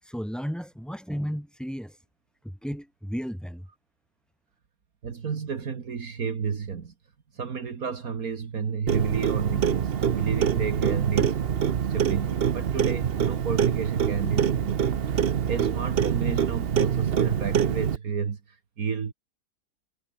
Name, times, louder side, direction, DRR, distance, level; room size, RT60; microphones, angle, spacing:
voice 1, 0.0-2.0 2.4-3.7, equal, ahead, 4.0 m, -34 dB
voice 2, 5.0-6.9 7.3-11.4 11.9-15.0 15.5-19.1, right 6 dB, 60° right, 2.1 m, -31 dB
Clock, 8.9-18.0, right 8 dB, 45° right, 0.9 m, -25 dB
omnidirectional pair, 1.7 m